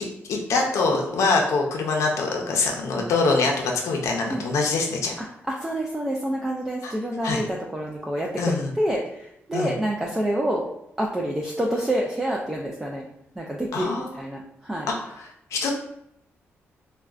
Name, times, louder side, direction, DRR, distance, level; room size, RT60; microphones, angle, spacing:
voice 1, 0.3-5.2 6.8-6.9 7.2-7.4 8.4-8.7 9.5-9.7 13.7-14.1 14.9-15.7, left 3 dB, 80° left, 0 dB, 0.5 m, -24 dB
voice 2, 5.5-8.3 8.8-10.6 11.0-13.1 13.4-14.9, right 1 dB, 10° right, -2 dB, 0.3 m, -27 dB
3.6 x 2.2 x 2.3 m, 0.78 s
cardioid pair, 115°, 5 cm